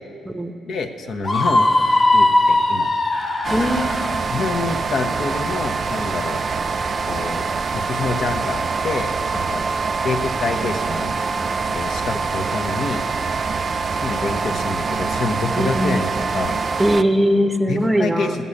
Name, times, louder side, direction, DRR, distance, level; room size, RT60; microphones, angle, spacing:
voice 1, 0.7-1.7 2.1-2.9 4.3-6.5 7.1-7.4 7.7-9.6 10.0-11.1 11.7-13.0 14.0-16.6 17.7-18.5, left 3 dB, 60° left, 4 dB, 1.0 m, -27 dB
Screaming, 1.2-4.2, left 2 dB, 30° left, 0.7 m, -18 dB
sound 1, 3.4-17.0, right 4 dB, 45° right, 0.4 m, -24 dB
voice 2, 3.5-3.9 15.5-16.1 16.8-18.3, equal, 5° right, 7 dB, 0.8 m, -19 dB
15.5 x 5.5 x 8.5 m, 2.6 s
cardioid pair, 90°, 0 cm